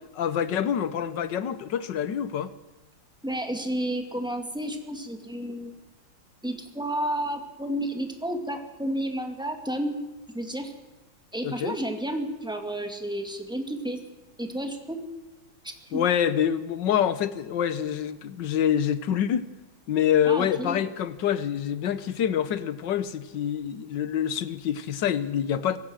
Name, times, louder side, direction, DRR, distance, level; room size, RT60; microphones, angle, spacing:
voice 1, 0.2-2.5 11.4-11.7 15.9-19.4 19.9-25.8, left 9 dB, 65° left, 1.6 m, -26 dB
voice 2, 3.2-5.8 6.4-10.0 10.3-10.7 11.3-14.0 14.4-15.0 15.6-16.0 20.2-20.8, right 1 dB, ahead, 2.1 m, -31 dB
24.5 x 16.5 x 6.4 m
omnidirectional pair, 2.1 m